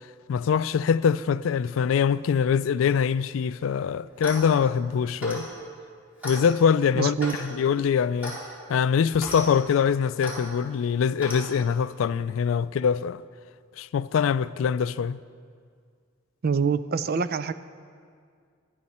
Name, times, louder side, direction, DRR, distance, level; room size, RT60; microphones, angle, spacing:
voice 1, 0.3-5.5 6.2-8.4 8.7-13.2 13.8-15.2, left 7 dB, 80° left, 0.3 m, -23 dB
Clock, 4.1-4.5 5.2-5.5 6.2-6.4 7.2-7.4 8.2-8.4 9.1-9.4 10.2-10.4 11.2-11.4, equal, 10° right, 4.0 m, -35 dB
voice 2, 7.0-7.4 16.4-17.5, right 5 dB, 50° right, 0.4 m, -25 dB
18.0 x 11.5 x 4.3 m
head